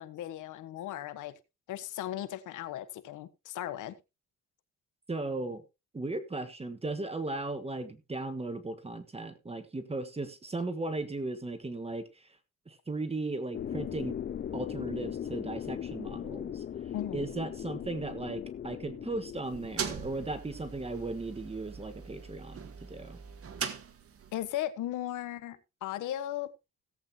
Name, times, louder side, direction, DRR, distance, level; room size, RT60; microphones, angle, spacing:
voice 1, 0.0-1.3 1.7-4.0 16.9-17.3 24.3-26.5, left 12 dB, 80° left, 1.3 m, -37 dB
voice 2, 5.1-5.6 5.9-12.3 12.7-14.2 14.5-16.6 17.1-23.2, right 2 dB, 20° right, 1.6 m, -36 dB
sound 1, 13.5-20.9, left 9 dB, 35° left, 0.5 m, -39 dB
sound 2, 19.4-24.4, right 6 dB, 50° right, 1.5 m, -41 dB
17.0 x 8.1 x 2.8 m
cardioid pair, 90°, 30 cm